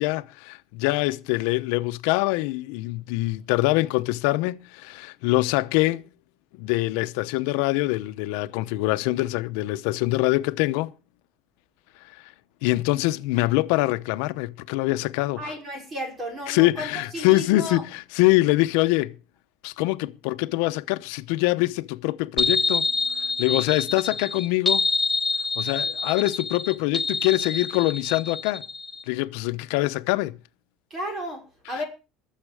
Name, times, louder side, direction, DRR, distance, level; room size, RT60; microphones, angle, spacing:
voice 1, 0.0-6.1 6.6-10.9 12.6-15.6 16.5-19.1 19.6-22.8 23.4-24.9 25.6-28.6 29.1-30.4, left 19 dB, 80° left, 0.8 m, -24 dB
voice 2, 15.4-17.8 30.9-31.8, equal, 25° right, 5.2 m, -33 dB
sound 1, 22.4-29.0, left 3 dB, 5° left, 2.1 m, -26 dB
22.5 x 7.4 x 4.9 m
cardioid pair, 155°, 0 cm